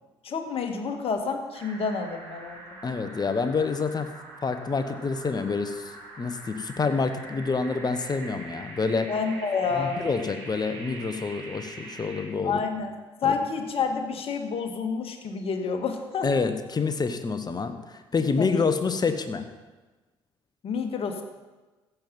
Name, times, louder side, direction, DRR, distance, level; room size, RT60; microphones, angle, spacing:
voice 1, 0.2-2.6 9.1-10.1 12.4-12.9 13.2-16.3 18.4-18.7 20.6-21.2, left 5 dB, 50° left, 4 dB, 1.8 m, -29 dB
sound 1, 1.5-12.2, right 2 dB, 70° right, 3.6 m, -44 dB
voice 2, 2.8-4.1 4.4-9.1 9.8-12.6 13.2-13.3 16.2-19.5, left 4 dB, 35° left, 8 dB, 1.3 m, -27 dB
15.0 x 7.4 x 5.5 m, 1.2 s
hypercardioid pair, 50°, 12 cm